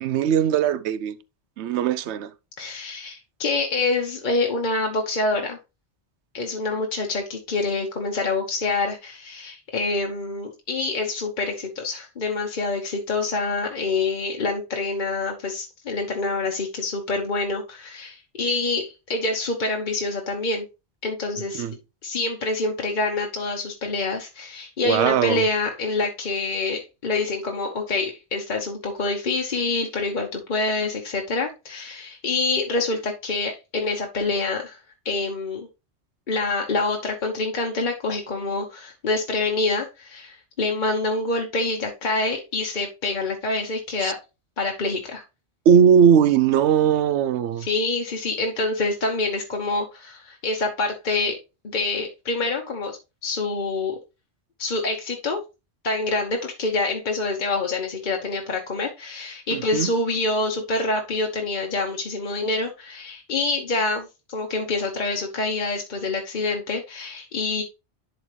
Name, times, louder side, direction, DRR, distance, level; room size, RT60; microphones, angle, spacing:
voice 1, 0.0-1.2 1.6-2.3 21.6-21.7 24.8-25.4 44.0-44.1 45.7-47.7 59.5-59.9, right 8 dB, 90° right, 0.9 m, -19 dB
voice 2, 2.6-5.6 6.3-20.7 21.0-21.6 22.0-34.8 35.0-35.7 36.3-44.2 44.6-45.2 47.6-51.4 51.6-54.0 54.6-55.4 55.8-67.6, left 3 dB, 45° left, 1.0 m, -26 dB
11.0 x 4.0 x 3.2 m
omnidirectional pair, 1.1 m